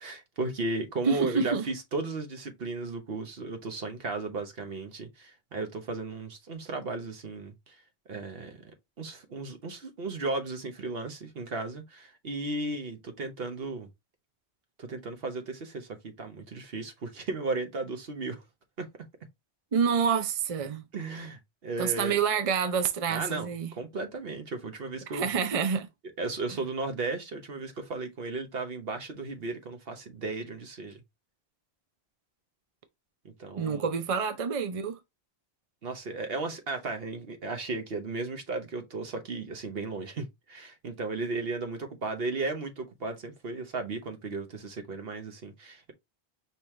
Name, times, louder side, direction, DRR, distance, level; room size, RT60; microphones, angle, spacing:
voice 1, 0.0-7.8 8.1-8.6 9.0-13.9 14.8-18.4 18.8-18.9 20.9-22.2 23.1-23.5 23.8-25.3 26.2-31.0 33.4-33.9 35.8-45.9, right 3 dB, 65° right, 1.1 m, -35 dB
voice 2, 1.1-1.6 19.7-20.9 21.8-23.7 25.1-25.9 33.6-35.0, right 6 dB, 40° right, 0.6 m, -27 dB
5.3 x 2.9 x 3.1 m
omnidirectional pair, 1.1 m